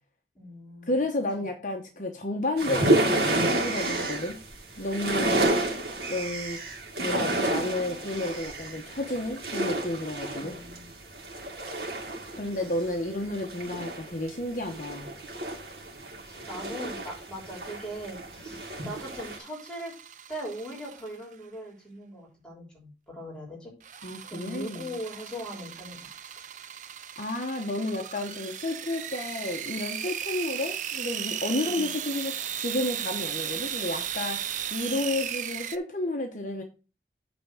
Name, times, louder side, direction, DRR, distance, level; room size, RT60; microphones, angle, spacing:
voice 1, 0.3-1.0 1.4-1.5 10.3-10.9 12.6-12.7 16.0-19.9 20.3-23.7 24.3-26.1 31.6-31.9, equal, 5° left, -3 dB, 3.2 m, -40 dB
voice 2, 0.9-4.4 4.8-5.7 6.1-6.6 7.0-10.5 12.3-15.1 24.0-25.0 27.2-36.6, left 2 dB, 45° left, 3 dB, 1.0 m, -31 dB
sound 1, 2.6-19.4, right 2 dB, 65° right, 2.2 m, -30 dB
sound 2, 18.8-21.3 23.8-35.8, right 9 dB, 45° right, 0.5 m, -36 dB
8.8 x 3.6 x 6.5 m, 0.33 s
head